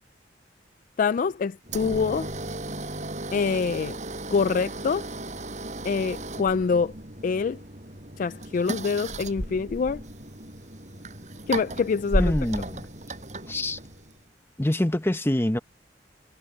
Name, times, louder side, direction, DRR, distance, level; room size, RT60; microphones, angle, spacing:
voice 1, 1.0-2.3 3.3-4.0 4.3-5.1 5.8-6.9 7.2-7.6 8.2-10.0 11.5-12.3, left 5 dB, 45° left, 0.3 m, -25 dB
sound 1, 1.7-14.2, right 1 dB, 40° right, 7.0 m, -34 dB
voice 2, 12.2-12.9 13.5-13.8 14.6-15.6, left 1 dB, 15° left, 0.9 m, -25 dB
head